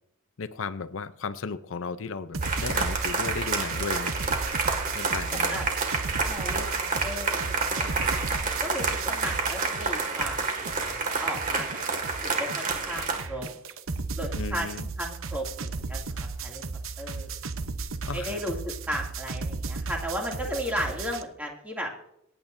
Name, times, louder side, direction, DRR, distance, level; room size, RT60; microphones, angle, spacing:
voice 1, 0.4-4.2 4.9-5.7 14.3-14.9 18.0-18.4, left 4 dB, 70° left, 13 dB, 0.6 m, -35 dB
sound 1, 2.3-9.9 10.2-21.2, right 3 dB, 80° right, 0.9 m, -35 dB
sound 2, 2.4-13.2, right 4 dB, 40° right, 2.0 m, -29 dB
voice 2, 5.3-5.6 6.2-8.2 8.6-10.4 11.2-13.5 14.2-14.7 15.0-16.0 16.4-16.6 17.0-17.3 18.1-21.9, equal, 5° right, -1 dB, 2.5 m, -35 dB
26.5 x 8.9 x 2.7 m, 0.77 s
head